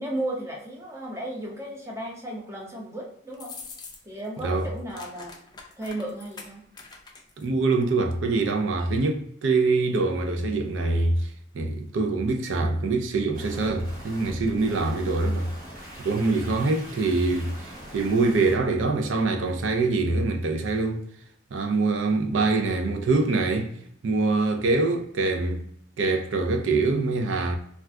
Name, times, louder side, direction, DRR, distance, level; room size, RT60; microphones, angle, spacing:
voice 1, 0.0-3.6 4.0-5.3 5.8-6.6, right 1 dB, 15° right, 0.7 m, -34 dB
sound 1, 3.3-4.3 4.5-7.5, left 4 dB, 25° left, 0.4 m, -44 dB
voice 2, 4.4-4.7 7.4-15.5 16.0-21.1 21.5-25.7 26.0-27.6, right 3 dB, 85° right, 0.4 m, -24 dB
sound 2, 13.3-18.5, equal, 45° right, 1.1 m, -42 dB
2.4 x 2.2 x 3.5 m
head